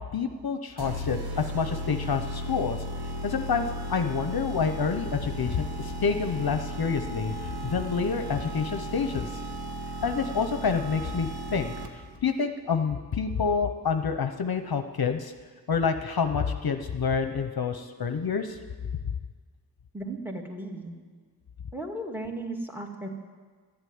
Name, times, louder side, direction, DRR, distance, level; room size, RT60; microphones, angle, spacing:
voice 1, 0.1-2.8 3.2-9.4 10.0-15.3 15.7-18.6, left 5 dB, 60° left, 7 dB, 0.7 m, -28 dB
sound 1, 0.8-12.2, equal, 60° right, 1.3 m, -35 dB
voice 2, 19.9-20.9 21.7-23.1, right 1 dB, 5° right, 3 dB, 2.0 m, -35 dB
12.0 x 8.0 x 9.4 m, 1.6 s
cardioid pair, 50°, 42 cm